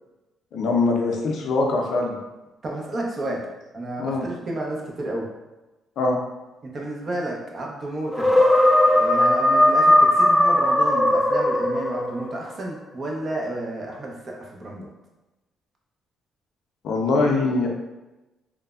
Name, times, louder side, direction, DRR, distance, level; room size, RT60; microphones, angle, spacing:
voice 1, 0.5-2.2 4.0-4.2 6.0-6.2 16.8-17.7, left 3 dB, 70° left, 1 dB, 0.4 m, -22 dB
voice 2, 2.6-3.4 3.7-5.3 6.6-8.4 8.8-14.9, right 1 dB, 40° right, -1 dB, 0.6 m, -31 dB
sound 1, 8.1-12.2, left 1 dB, 10° left, 0.3 m, -18 dB
3.1 x 2.0 x 2.3 m, 1.1 s
cardioid pair, 90°, 0 cm